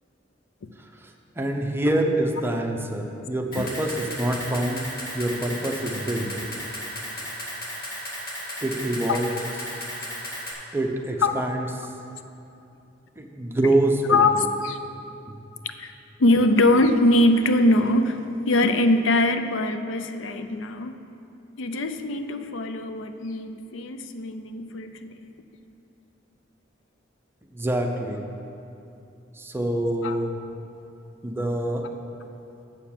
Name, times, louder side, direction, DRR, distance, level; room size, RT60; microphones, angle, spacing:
voice 1, 0.8-4.8 5.1-6.3 8.6-9.3 10.7-11.9 13.2-14.5 15.3-15.4 27.5-28.3 29.4-30.3 31.2-31.9, right 1 dB, 10° right, 2 dB, 0.7 m, -26 dB
Camera, 3.5-10.5, equal, 50° left, 1.8 m, -35 dB
voice 2, 14.1-14.8 15.6-15.9 16.2-18.2 18.5-21.0 21.6-25.1 30.0-30.2, left 2 dB, 80° left, 9 dB, 0.5 m, -22 dB
7.1 x 6.9 x 7.3 m, 2.9 s
head